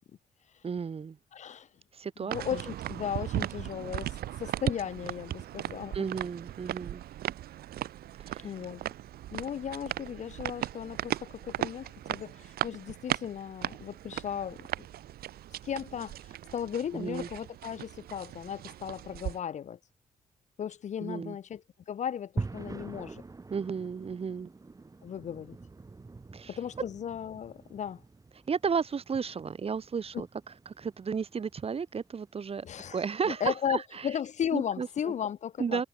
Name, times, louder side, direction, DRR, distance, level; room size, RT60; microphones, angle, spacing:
voice 1, 0.6-1.2 1.9-2.6 5.9-7.0 8.2-8.5 16.9-17.3 21.0-21.4 23.5-24.5 26.3-26.6 28.5-30.3 30.7-32.6 32.9-34.1 34.5-35.1 35.6-35.8, right 6 dB, 40° right, 1.1 m, -33 dB
voice 2, 1.3-1.7 2.2-6.0 8.4-8.8 9.3-14.9 15.6-19.8 20.6-23.2 25.0-25.6 26.5-28.0 30.1-30.2 32.6-33.0 33.3-35.8, left 9 dB, 50° left, 0.5 m, -36 dB
sound 1, 2.3-19.4, right 13 dB, 80° right, 1.0 m, -37 dB
sound 2, 22.4-32.6, right 3 dB, 20° right, 1.1 m, -44 dB
cardioid pair, 80°, 16 cm